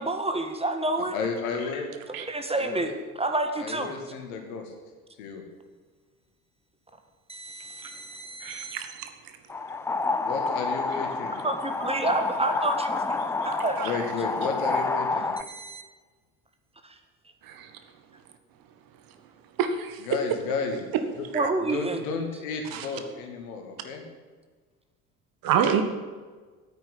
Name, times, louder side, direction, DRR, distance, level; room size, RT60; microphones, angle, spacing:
voice 1, 0.0-1.2 2.3-4.0 7.3-8.8 11.4-13.9 15.5-15.8 16.8-17.0 21.3-22.0, right 2 dB, 15° right, 6 dB, 1.7 m, -29 dB
voice 2, 1.0-2.0 2.5-2.9 3.6-4.7 5.2-5.4 10.2-11.4 13.8-15.3 20.0-21.3 21.7-24.0, left 4 dB, 65° left, 3 dB, 2.4 m, -32 dB
voice 3, 8.4-9.1 13.8-14.0 17.5-17.7 19.6-20.0 21.3-21.5 22.7-22.9 25.4-25.8, right 8 dB, 50° right, 8 dB, 1.6 m, -27 dB
sound 1, 9.5-15.4, left 3 dB, 5° left, 0.3 m, -29 dB
9.5 x 9.2 x 9.8 m, 1.4 s
figure-of-eight pair, 60°, 45 cm